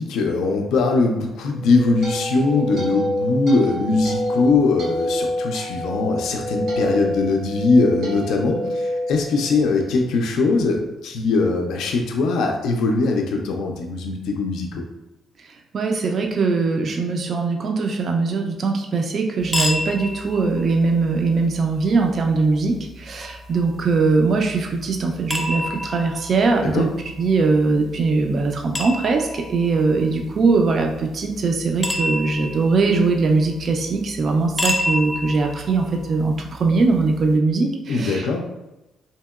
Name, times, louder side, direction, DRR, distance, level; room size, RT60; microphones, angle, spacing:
voice 1, 0.0-14.8 26.6-26.9 37.9-38.4, left 3 dB, 80° left, 2 dB, 0.3 m, -21 dB
sound 1, 1.5-9.9, left 1 dB, 75° right, 1.1 m, -27 dB
voice 2, 15.7-26.9 27.2-38.4, right 3 dB, 50° right, 3 dB, 0.3 m, -21 dB
sound 2, 19.4-37.4, left 1 dB, 10° left, 0.5 m, -31 dB
2.8 x 2.8 x 2.3 m, 0.98 s
cardioid pair, 90°, 0 cm